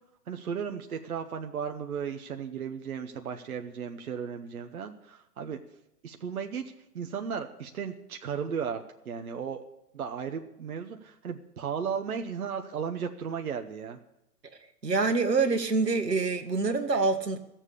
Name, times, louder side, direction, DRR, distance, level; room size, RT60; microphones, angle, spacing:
voice 1, 0.3-5.6 6.0-9.6 9.9-14.0, right 7 dB, 60° right, 5 dB, 1.2 m, -35 dB
voice 2, 14.8-17.4, right 4 dB, 90° right, 5 dB, 1.7 m, -26 dB
15.5 x 7.4 x 8.4 m, 0.86 s
figure-of-eight pair, 140°, 48 cm